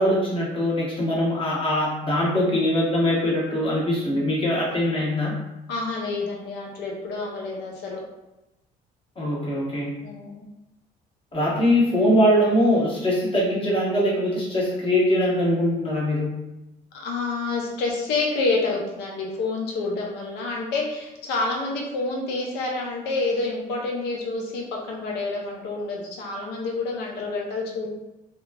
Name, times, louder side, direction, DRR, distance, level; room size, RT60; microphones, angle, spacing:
voice 1, 0.0-5.3 9.2-10.0 11.3-16.3, equal, 30° left, -5 dB, 1.0 m, -22 dB
voice 2, 5.7-8.0 10.0-10.4 16.9-27.9, left 3 dB, 80° left, -1 dB, 0.7 m, -28 dB
2.9 x 2.3 x 2.3 m, 0.95 s
cardioid pair, 110°, 17 cm